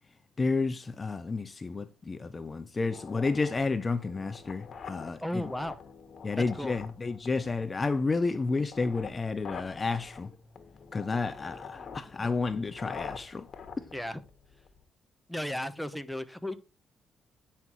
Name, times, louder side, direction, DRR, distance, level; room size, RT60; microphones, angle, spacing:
voice 1, 0.4-5.4 6.2-10.3 10.9-13.5, left 3 dB, 30° left, 0.7 m, -31 dB
sound 1, 2.8-14.8, left 6 dB, 50° left, 1.6 m, -46 dB
voice 2, 5.2-5.8 6.4-6.7 11.7-12.3 13.9-14.2 15.3-16.6, left 1 dB, 5° left, 1.0 m, -35 dB
9.5 x 5.8 x 4.6 m
cardioid pair, 90°, 0 cm